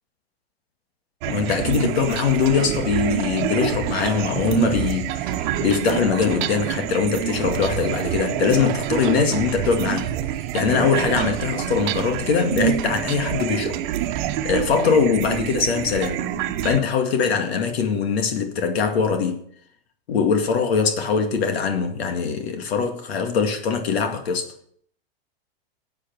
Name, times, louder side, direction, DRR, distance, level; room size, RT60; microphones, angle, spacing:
sound 1, 1.2-16.8, right 11 dB, 50° right, 1.1 m, -26 dB
voice 1, 1.3-10.2 10.5-13.8 14.4-16.2 16.6-19.5 20.1-24.5, left 6 dB, 80° left, 2.1 m, -22 dB
13.5 x 8.5 x 4.6 m
supercardioid pair, 150°, 30 cm